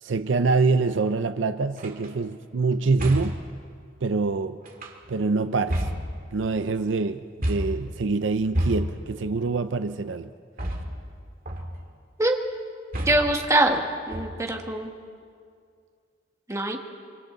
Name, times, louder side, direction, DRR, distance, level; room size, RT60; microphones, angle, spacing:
voice 1, 0.0-3.4 4.0-4.6 5.1-5.8 6.3-10.3, right 3 dB, 70° right, 10 dB, 0.6 m, -25 dB
sound 1, 1.8-2.1 3.0-3.5 4.6-5.2 5.7-6.6 7.4-7.9 8.5-9.2 10.6-11.1 11.5-11.9 12.9-13.4 14.1-14.6, equal, 50° right, 2.2 m, -30 dB
voice 2, 13.1-13.8 14.1-14.9 16.5-16.8, right 1 dB, 15° right, 2 dB, 1.6 m, -23 dB
25.5 x 25.5 x 4.0 m, 2.2 s
head